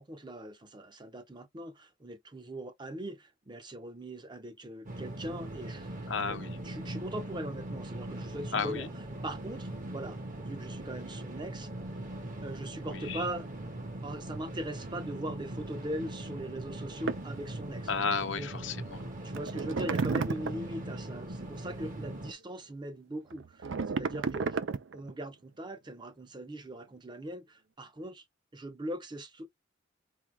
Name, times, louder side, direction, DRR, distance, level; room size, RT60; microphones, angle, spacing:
voice 1, 0.0-8.9 9.2-11.7 12.4-13.5 14.0-17.9 18.3-18.5 19.2-24.6 24.9-28.2 28.5-29.5, right 1 dB, 25° right, 0.7 m, -40 dB
sound 1, 4.9-22.3, right 1 dB, 45° right, 1.0 m, -40 dB
voice 2, 6.1-6.6 8.5-8.9 12.9-13.2 17.9-19.1, left 5 dB, 70° left, 0.8 m, -33 dB
sound 2, 17.1-17.3 18.9-19.0 19.3-20.7 23.3-25.1, right 4 dB, 70° right, 0.5 m, -32 dB
3.6 x 2.8 x 4.7 m
head